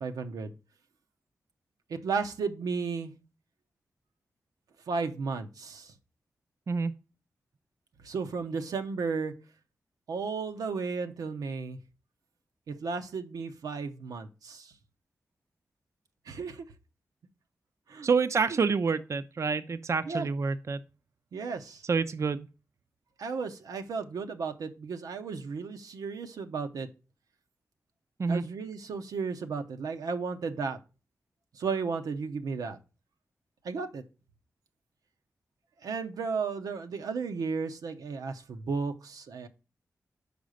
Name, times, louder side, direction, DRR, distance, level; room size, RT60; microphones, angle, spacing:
voice 1, 0.0-0.5 1.9-3.1 4.9-5.9 8.0-9.3 10.1-11.8 12.7-14.7 16.3-16.7 17.9-18.1 20.1-20.3 21.3-21.8 23.2-26.9 28.3-30.8 31.5-32.8 33.6-34.0 35.8-39.5, right 5 dB, 90° right, 0.7 m, -34 dB
voice 2, 18.0-20.8 21.9-22.5 28.2-28.4, right 5 dB, 50° right, 0.4 m, -27 dB
5.2 x 4.8 x 6.3 m
cardioid pair, 50°, 6 cm